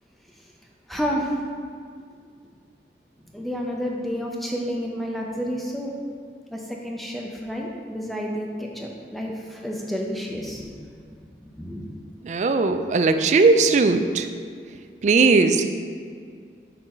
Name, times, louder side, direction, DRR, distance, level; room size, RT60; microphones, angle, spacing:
voice 1, 0.9-1.3 3.3-5.9 6.5-6.6 6.8-10.7 11.6-11.8, equal, ahead, -1 dB, 0.6 m, -30 dB
voice 2, 12.2-14.3 15.0-15.7, right 4 dB, 40° right, 8 dB, 0.3 m, -18 dB
6.9 x 3.8 x 4.3 m, 2.1 s
head